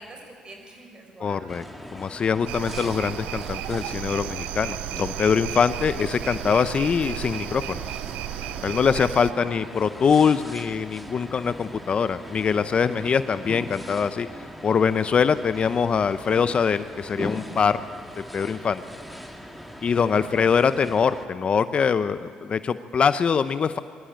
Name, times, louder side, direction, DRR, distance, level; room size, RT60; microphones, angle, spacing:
voice 1, 0.0-1.5 9.3-9.6 20.0-20.6, right 2 dB, 35° right, 3 dB, 5.8 m, -45 dB
voice 2, 1.2-1.6 1.9-7.8 8.6-14.3 14.6-17.8 18.2-18.8 19.8-23.8, left 6 dB, 45° left, 12 dB, 0.7 m, -23 dB
sound 1, 1.5-21.3, equal, ahead, 2.0 m, -40 dB
sound 2, 2.5-9.3, right 15 dB, 85° right, 0.4 m, -34 dB
23.5 x 13.0 x 9.0 m, 2.1 s
supercardioid pair, 75°, 3 cm